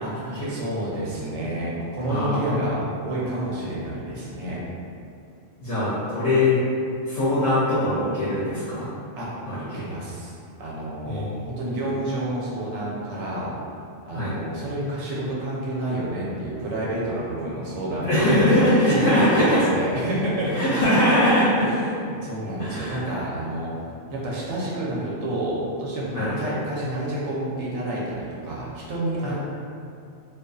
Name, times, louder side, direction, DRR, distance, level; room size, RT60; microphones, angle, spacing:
voice 1, 0.0-4.6 9.2-9.4 9.7-13.5 14.1-20.6 21.2-23.7 24.1-29.3, right 1 dB, 70° right, -6 dB, 0.9 m, -29 dB
voice 2, 2.1-2.5 5.6-6.6 7.1-8.9 9.5-9.8 11.0-11.3 14.1-14.3 18.0-19.6 20.5-21.6 22.6-23.0 26.1-26.3 29.2-29.3, left 1 dB, 70° left, -10 dB, 0.9 m, -21 dB
2.5 x 2.3 x 2.3 m, 2.5 s
omnidirectional pair, 1.3 m